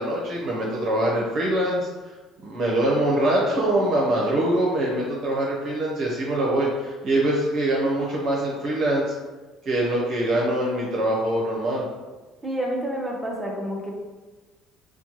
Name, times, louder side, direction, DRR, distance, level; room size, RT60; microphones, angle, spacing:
voice 1, 0.0-1.9 2.4-9.1 9.6-11.9, right 1 dB, 45° right, -4 dB, 0.8 m, -23 dB
voice 2, 12.4-13.9, equal, 10° right, -1 dB, 0.7 m, -29 dB
4.2 x 2.2 x 3.0 m, 1.2 s
cardioid pair, 125°, 0 cm